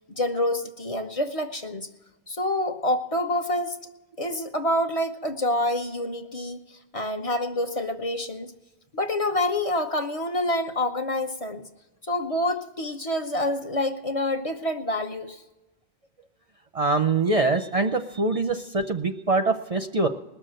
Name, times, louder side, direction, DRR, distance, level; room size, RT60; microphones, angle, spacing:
voice 1, 0.1-1.9 2.3-3.8 4.2-6.6 6.9-8.5 8.9-11.6 12.1-15.4, left 1 dB, 35° left, 5 dB, 0.9 m, -27 dB
voice 2, 16.7-20.1, right 3 dB, 40° right, 7 dB, 0.6 m, -24 dB
20.0 x 6.7 x 7.6 m, 1.1 s
omnidirectional pair, 1.0 m